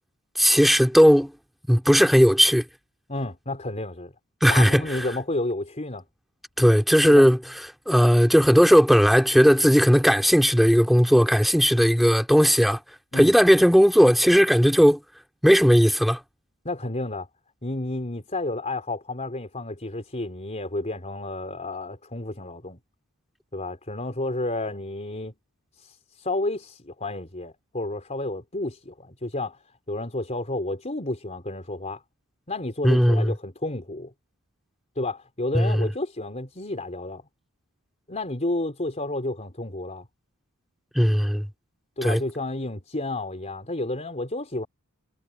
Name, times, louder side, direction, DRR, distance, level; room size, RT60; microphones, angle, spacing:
voice 1, 0.4-1.3 1.7-2.6 4.4-5.0 6.6-7.4 7.9-12.8 13.1-15.0 15.4-16.2 32.8-33.3 35.5-35.9 40.9-41.5 42.0-42.2, equal, ahead, 2.4 m, -17 dB
voice 2, 3.1-4.1 4.5-6.0 7.1-7.3 13.1-13.3 16.6-17.3 17.6-22.8 23.5-25.4 25.8-29.6 29.9-32.0 32.5-34.1 35.0-37.2 38.1-40.1 42.0-44.7, left 2 dB, 30° left, 3.9 m, -31 dB
head